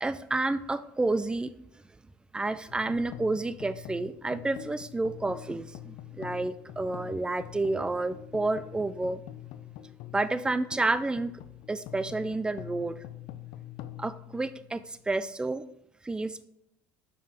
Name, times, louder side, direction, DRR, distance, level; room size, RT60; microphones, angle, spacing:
voice 1, 0.0-1.5 2.3-9.2 10.1-11.3 11.7-13.0 14.0-15.6 16.0-16.5, right 2 dB, 10° right, 13 dB, 0.4 m, -30 dB
sound 1, 2.7-15.1, left 13 dB, 65° left, 0.5 m, -45 dB
5.9 x 4.7 x 3.6 m, 0.81 s
supercardioid pair, 100°, 8 cm